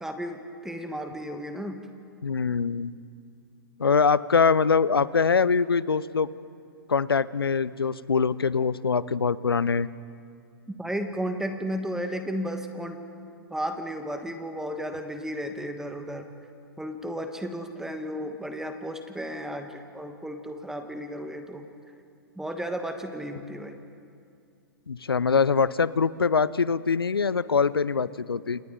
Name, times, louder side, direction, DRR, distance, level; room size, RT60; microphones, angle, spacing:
voice 1, 0.0-1.8 10.7-13.0 13.5-16.3 16.8-21.6 22.4-23.8, equal, 5° right, 6 dB, 1.3 m, -33 dB
voice 2, 2.2-2.9 3.8-6.3 6.9-9.9 24.9-28.6, left 5 dB, 90° left, 19 dB, 0.6 m, -23 dB
29.0 x 28.0 x 3.8 m, 2.4 s
hypercardioid pair, 115°, 12 cm